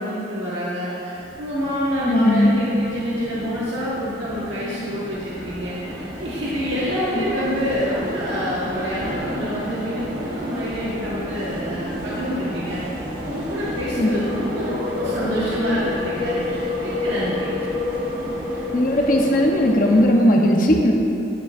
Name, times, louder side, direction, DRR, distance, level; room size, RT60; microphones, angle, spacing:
voice 1, 0.0-5.8 6.2-12.8 13.2-17.5, equal, 90° right, -8 dB, 1.4 m, -27 dB
sound 1, 1.1-20.0, left 1 dB, 55° right, 1.3 m, -30 dB
voice 2, 2.1-2.5 14.0-14.1 18.7-20.9, left 1 dB, 50° left, 1 dB, 0.9 m, -17 dB
10.0 x 9.9 x 2.6 m, 3.0 s
head